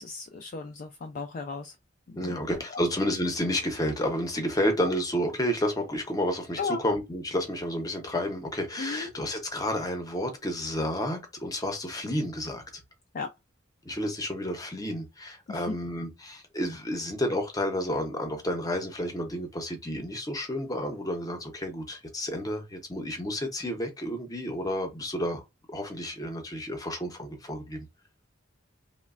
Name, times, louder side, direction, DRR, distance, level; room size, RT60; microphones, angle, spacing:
voice 1, 0.0-1.8 2.1-2.4 2.7-2.8 6.6-6.8 8.8-9.1 13.1-13.3 15.5-15.7, left 4 dB, 45° left, 0.3 m, -35 dB
voice 2, 2.2-12.6 13.8-27.8, equal, 20° left, 0.7 m, -31 dB
3.1 x 2.1 x 2.4 m
head